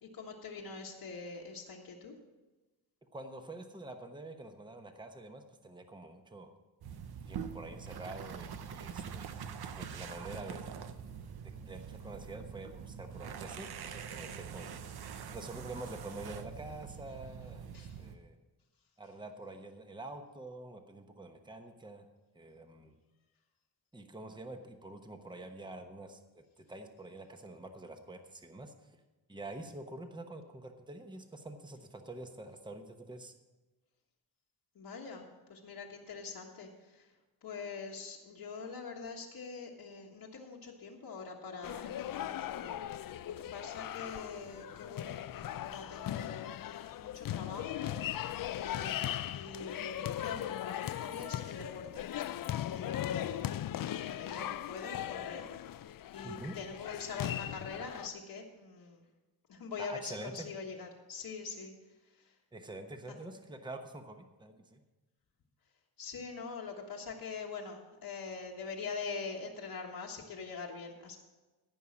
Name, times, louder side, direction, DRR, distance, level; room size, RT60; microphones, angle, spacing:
voice 1, 0.0-2.1 17.7-18.0 34.7-37.1 37.4-53.6 54.0-55.5 56.1-59.0 59.5-61.7 62.1-62.3 66.0-71.2, left 5 dB, 80° left, -2 dB, 1.5 m, -44 dB
voice 2, 3.1-6.5 7.3-9.3 9.7-10.6 11.6-14.7 15.3-18.4 19.0-22.1 22.3-23.0 23.9-26.2 26.6-28.9 29.3-33.3 56.2-56.6 59.8-60.5 62.5-64.8, right 2 dB, 10° right, 6 dB, 1.0 m, -46 dB
sound 1, 6.8-18.2, right 7 dB, 85° right, 0.8 m, -44 dB
sound 2, 41.6-58.1, left 12 dB, 65° left, 0.5 m, -38 dB
15.0 x 5.5 x 7.1 m, 1.2 s
cardioid pair, 90°, 37 cm